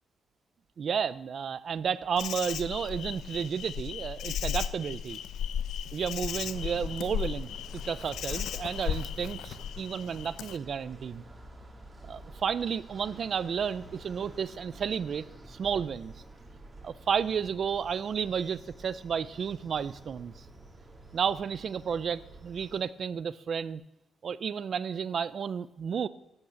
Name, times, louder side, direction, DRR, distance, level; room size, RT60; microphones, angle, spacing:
voice 1, 0.8-5.2 5.9-11.2 12.1-16.1 16.8-20.3 21.1-23.8 24.2-26.1, right 7 dB, 40° right, 17 dB, 0.5 m, -32 dB
Insect, 2.2-10.6, left 9 dB, 85° left, 0.6 m, -35 dB
sound 1, 6.3-22.8, right 2 dB, 20° right, 1.8 m, -49 dB
12.0 x 8.5 x 8.1 m, 0.88 s
cardioid pair, 170°, 0 cm